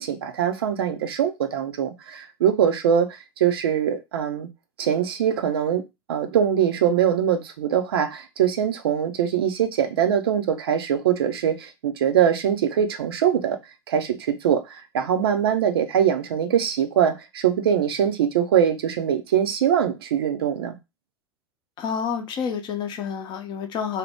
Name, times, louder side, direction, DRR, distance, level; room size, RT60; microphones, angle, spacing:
voice 1, 0.0-4.5 4.8-5.8 6.1-13.6 13.9-20.8, right 9 dB, 65° right, 0.5 m, -22 dB
voice 2, 21.8-24.0, left 7 dB, 35° left, 0.7 m, -29 dB
2.7 x 2.1 x 3.4 m
figure-of-eight pair, 85°, 13 cm